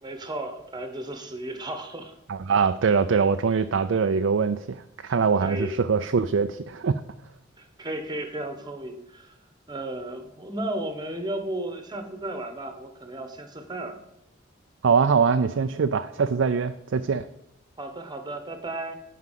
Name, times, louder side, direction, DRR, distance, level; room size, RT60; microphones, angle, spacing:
voice 1, 0.0-2.1 5.4-5.7 7.6-9.3 9.7-14.0 17.8-18.9, right 1 dB, 20° right, 7 dB, 1.2 m, -34 dB
voice 2, 2.3-7.0 14.8-17.3, right 5 dB, 70° right, 8 dB, 0.4 m, -23 dB
9.6 x 5.1 x 7.5 m, 0.82 s
head